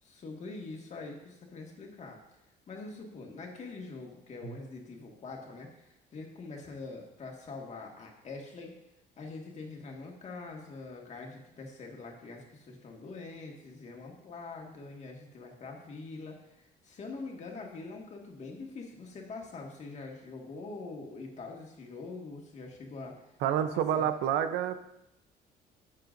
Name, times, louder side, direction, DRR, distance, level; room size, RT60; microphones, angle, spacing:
voice 1, 0.0-2.2 2.7-8.7 9.2-16.4 16.8-23.2 23.7-24.1, left 3 dB, 45° left, 0 dB, 1.9 m, -44 dB
voice 2, 23.4-24.8, right 9 dB, 85° right, 10 dB, 0.7 m, -28 dB
11.5 x 7.5 x 2.6 m, 0.86 s
cardioid pair, 110°, 17 cm